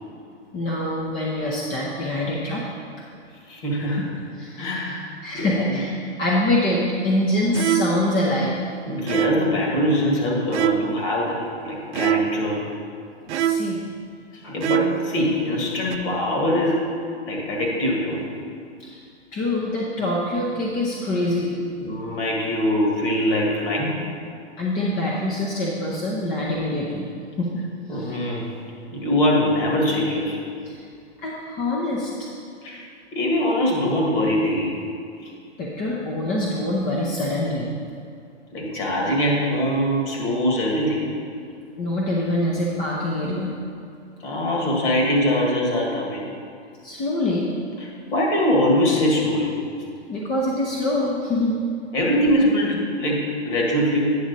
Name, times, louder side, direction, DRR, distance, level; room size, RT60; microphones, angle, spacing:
voice 1, 0.5-2.7 4.4-4.9 5.2-5.9 6.2-8.6 13.2-13.8 18.8-19.0 19.3-21.6 24.6-27.1 27.4-27.6 27.9-28.2 30.6-30.8 31.2-32.3 35.6-37.7 41.8-43.5 46.8-47.5 50.1-51.7, left 1 dB, 25° left, -3 dB, 0.8 m, -25 dB
voice 2, 3.5-4.1 4.6-5.1 5.3-5.8 8.9-11.4 11.6-12.6 14.4-16.9 17.3-18.3 21.8-24.0 27.9-28.5 28.9-30.4 32.6-32.8 33.1-34.8 35.2-35.3 38.5-41.1 44.2-46.3 48.1-49.5 51.9-54.2, left 1 dB, 50° left, -2 dB, 2.2 m, -22 dB
sound 1, 7.5-8.2 9.1-9.6 10.5-11.1 11.9-12.5 13.3-13.9 14.6-15.1 15.9-16.0, right 10 dB, 70° right, 0.5 m, -24 dB
9.3 x 6.0 x 4.1 m, 2.3 s
hypercardioid pair, 125°, 34 cm